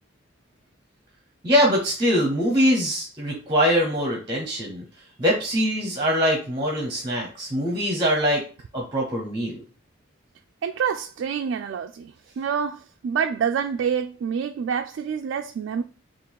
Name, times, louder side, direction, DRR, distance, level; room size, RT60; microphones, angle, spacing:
voice 1, 1.4-4.8 5.2-8.4 8.7-9.6, equal, 25° right, 0.9 m, -23 dB
voice 2, 10.6-15.8, right 7 dB, 75° right, 0.3 m, -27 dB
3.7 x 2.5 x 4.5 m
head